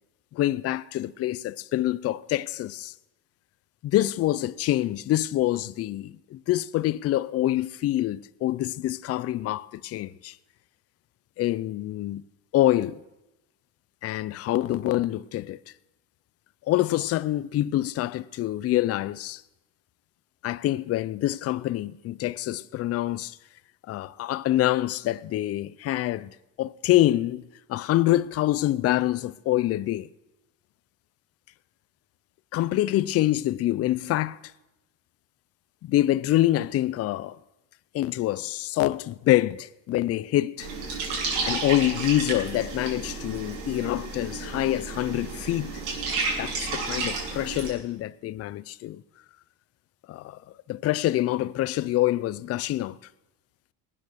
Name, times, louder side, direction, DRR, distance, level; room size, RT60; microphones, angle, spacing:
voice 1, 0.3-2.9 3.8-10.4 11.4-12.2 12.5-13.0 14.0-15.6 16.7-19.4 20.4-23.4 23.9-27.4 27.7-30.1 32.5-34.4 35.8-37.4 37.9-40.7 41.5-45.7 46.4-49.0 50.1-50.4 50.7-53.0, left 14 dB, 40° left, 0.5 m, -26 dB
sound 1, 40.6-47.7, right 4 dB, 80° right, 6.8 m, -32 dB
20.0 x 9.0 x 6.3 m
cardioid pair, 125°, 40 cm